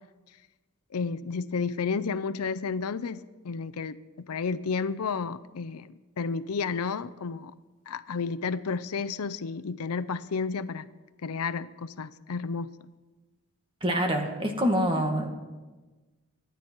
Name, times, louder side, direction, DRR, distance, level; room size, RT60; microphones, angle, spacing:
voice 1, 0.9-7.5 7.9-10.8 11.2-12.7, left 5 dB, 80° left, 13 dB, 0.6 m, -32 dB
voice 2, 13.8-15.3, equal, 25° right, 3 dB, 1.9 m, -26 dB
25.0 x 10.0 x 4.6 m, 1.2 s
head